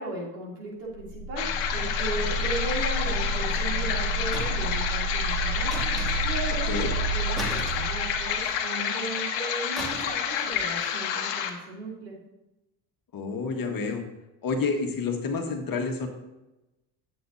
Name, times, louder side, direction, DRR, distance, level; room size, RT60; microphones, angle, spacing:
voice 1, 0.0-1.5 1.7-5.7 6.2-12.2, right 2 dB, 90° right, -4 dB, 3.0 m, -36 dB
sound 1, 0.9-8.6, right 2 dB, 60° right, 2.0 m, -30 dB
sound 2, 1.4-11.5, left 8 dB, 65° left, 1.3 m, -29 dB
sound 3, 4.3-4.8 5.7-6.5 7.4-8.5 9.8-10.3 10.5-10.8, equal, ahead, 2.5 m, -37 dB
voice 2, 13.1-14.0 14.4-16.1, left 4 dB, 45° left, 3 dB, 1.7 m, -29 dB
10.0 x 7.8 x 2.7 m, 0.97 s
supercardioid pair, 80°, 47 cm